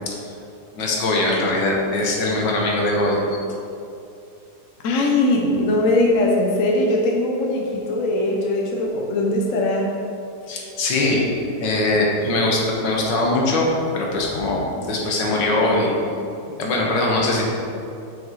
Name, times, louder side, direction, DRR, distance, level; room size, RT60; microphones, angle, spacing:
voice 1, 0.8-3.4 10.5-11.3 11.6-16.0 16.5-17.5, left 2 dB, 85° left, -2 dB, 1.9 m, -21 dB
voice 2, 4.8-9.9, left 1 dB, 55° left, -1 dB, 1.0 m, -20 dB
8.0 x 5.8 x 4.0 m, 2.6 s
omnidirectional pair, 1.9 m